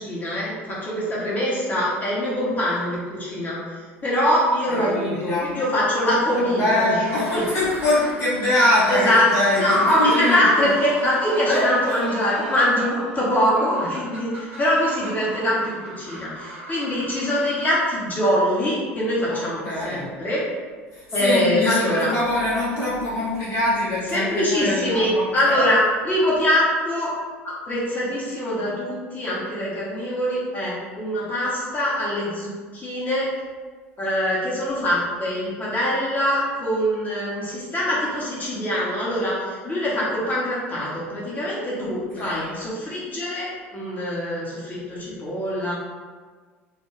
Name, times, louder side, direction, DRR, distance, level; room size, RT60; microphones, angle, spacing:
voice 1, 0.0-7.4 8.9-9.3 9.5-20.4 21.1-22.1 24.1-25.8 26.0-27.1 27.4-33.3 34.0-45.7, equal, 25° left, -7 dB, 1.0 m, -23 dB
voice 2, 4.7-5.6 6.4-10.7 11.5-12.0 19.3-20.1 20.9-25.6 41.7-41.9 42.1-42.6, left 1 dB, 45° left, -9 dB, 0.8 m, -24 dB
sound 1, 6.9-18.2, right 1 dB, 70° right, 0.8 m, -37 dB
2.4 x 2.2 x 3.1 m, 1.5 s
figure-of-eight pair, 70°, 7 cm